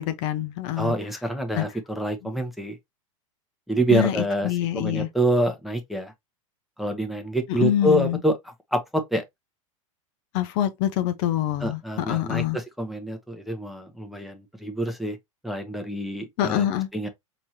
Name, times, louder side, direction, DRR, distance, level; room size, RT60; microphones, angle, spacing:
voice 1, 0.0-0.9 1.5-1.6 3.9-4.2 4.4-5.1 7.6-8.2 10.3-12.6 16.4-16.9, left 12 dB, 55° left, 0.7 m, -25 dB
voice 2, 0.8-2.8 3.7-6.1 6.8-8.4 8.7-9.2 11.6-15.2 15.4-16.7 16.9-17.1, right 1 dB, ahead, 0.9 m, -26 dB
4.4 x 3.0 x 2.7 m
hypercardioid pair, 105°, 18 cm